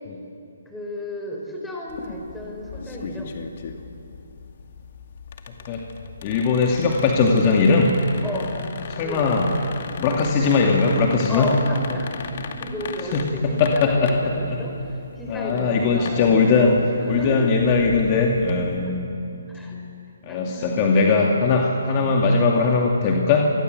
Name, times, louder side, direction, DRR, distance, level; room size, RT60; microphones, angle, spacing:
voice 1, 0.6-3.4 8.2-8.6 9.0-9.3 11.3-17.5 18.8-18.9 19.5-19.8 20.2-21.2, left 1 dB, 5° left, -1 dB, 4.6 m, -33 dB
sound 1, 1.9-18.8, left 5 dB, 50° left, 2.3 m, -38 dB
voice 2, 6.2-7.9 8.9-9.5 10.0-11.5 13.1-14.6 15.3-16.7 17.1-19.0 20.2-23.5, left 4 dB, 30° left, 0 dB, 2.4 m, -20 dB
27.0 x 20.5 x 8.1 m, 2.6 s
hypercardioid pair, 150°, 0 cm